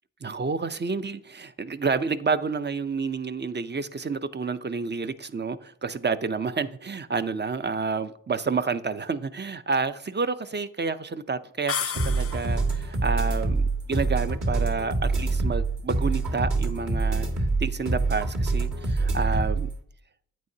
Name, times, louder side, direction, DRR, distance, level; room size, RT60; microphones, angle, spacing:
voice 1, 0.2-17.3 17.6-19.7, right 4 dB, 30° right, 0.6 m, -29 dB
sound 1, 11.7-12.8, left 8 dB, 40° left, 0.4 m, -32 dB
sound 2, 12.0-19.7, right 3 dB, 60° right, 1.9 m, -25 dB
9.3 x 8.4 x 2.8 m
cardioid pair, 45°, 36 cm